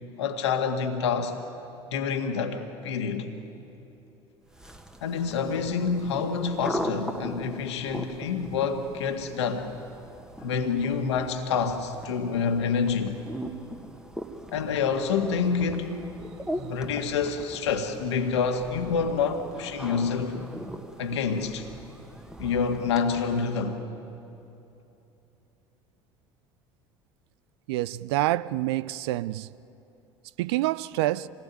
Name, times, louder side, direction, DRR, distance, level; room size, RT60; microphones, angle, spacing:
voice 1, 0.2-1.4 1.9-3.3 5.0-9.7 10.4-13.2 14.5-16.0 16.6-20.4 21.0-21.7 22.4-23.8, left 5 dB, 70° left, 1.9 m, -27 dB
sound 1, 4.5-23.8, equal, 5° right, 1.7 m, -40 dB
voice 2, 27.7-29.5 30.4-31.3, right 16 dB, 60° right, 0.5 m, -27 dB
27.5 x 19.5 x 9.2 m
figure-of-eight pair, 60°, 15 cm